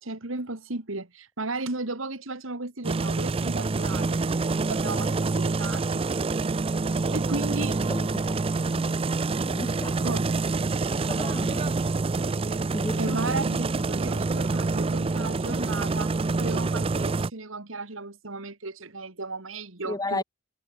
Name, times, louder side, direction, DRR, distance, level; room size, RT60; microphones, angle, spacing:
voice 1, 0.0-6.0 7.1-7.8 10.0-10.4 13.0-16.1 16.4-20.2, right 3 dB, 75° right, 2.3 m, -35 dB
sound 1, 2.8-17.3, right 3 dB, 30° right, 0.4 m, -27 dB
voice 2, 7.9-8.4 8.7-9.0 9.4-10.0 11.1-11.7 12.7-13.2 13.5-13.6 19.8-20.2, left 2 dB, 20° left, 1.2 m, -33 dB
head